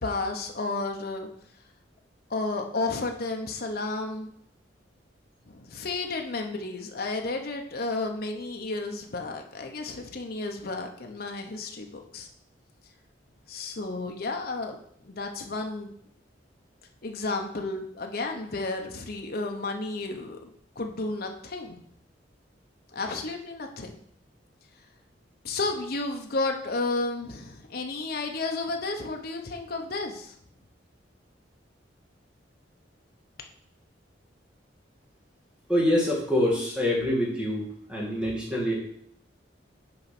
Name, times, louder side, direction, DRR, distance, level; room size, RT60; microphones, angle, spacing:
voice 1, 0.0-1.3 2.3-4.3 5.5-12.3 13.5-14.8 15.0-15.9 17.0-20.5 20.8-21.8 22.9-24.0 25.4-30.3, left 3 dB, 55° left, 3 dB, 0.9 m, -32 dB
voice 2, 35.7-37.6 37.9-38.7, left 1 dB, 5° right, -4 dB, 2.2 m, -25 dB
6.4 x 4.4 x 5.9 m, 0.66 s
head